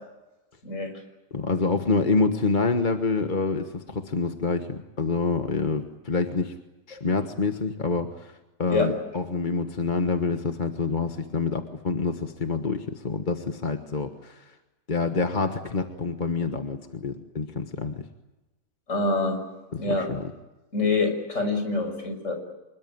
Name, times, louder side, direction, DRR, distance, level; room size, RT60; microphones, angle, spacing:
voice 1, 1.3-6.5 6.9-8.3 8.6-14.4 14.9-17.9 19.7-20.2, left 4 dB, 35° left, 6 dB, 1.5 m, -27 dB
voice 2, 18.9-19.4 19.7-20.1 20.7-22.3, left 3 dB, 65° left, 5 dB, 6.5 m, -25 dB
26.0 x 22.0 x 9.3 m, 1.1 s
omnidirectional pair, 1.4 m